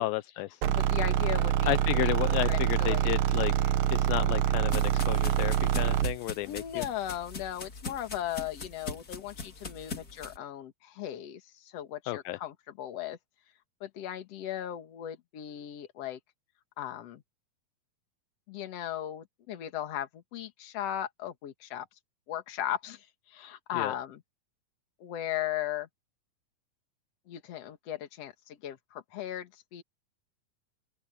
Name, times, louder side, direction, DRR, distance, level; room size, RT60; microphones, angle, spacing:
voice 1, 0.0-0.6 1.7-6.8 12.1-12.4 23.7-23.9, left 16 dB, 80° left, 2.4 m, -32 dB
sound 1, 0.6-6.2, right 10 dB, 75° right, 2.8 m, -26 dB
voice 2, 0.7-3.2 6.5-13.2 13.8-16.2 16.8-17.2 18.5-21.9 22.3-24.2 25.0-25.9 27.3-29.8, left 11 dB, 50° left, 2.4 m, -37 dB
sound 2, 3.8-10.4, left 4 dB, 30° left, 2.3 m, -42 dB
open air
omnidirectional pair, 4.2 m